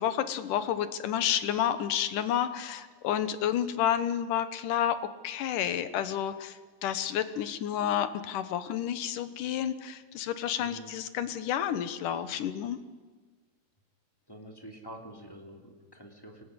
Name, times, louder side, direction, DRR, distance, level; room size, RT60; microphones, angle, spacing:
voice 1, 0.0-5.0 5.2-12.8, left 10 dB, 75° left, 11 dB, 2.6 m, -30 dB
voice 2, 10.6-10.9 14.3-16.4, equal, 5° left, 1 dB, 2.8 m, -47 dB
24.5 x 19.5 x 9.8 m, 1.4 s
omnidirectional pair, 3.7 m